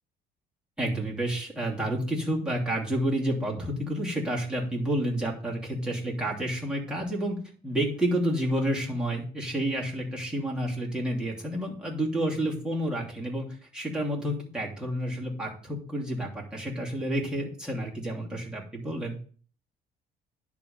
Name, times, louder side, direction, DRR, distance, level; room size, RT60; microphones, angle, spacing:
voice 1, 0.8-7.4 7.6-13.5 13.7-19.2, right 1 dB, 5° right, -4 dB, 2.9 m, -30 dB
10.5 x 3.6 x 7.1 m, 0.43 s
cardioid pair, 110°, 17 cm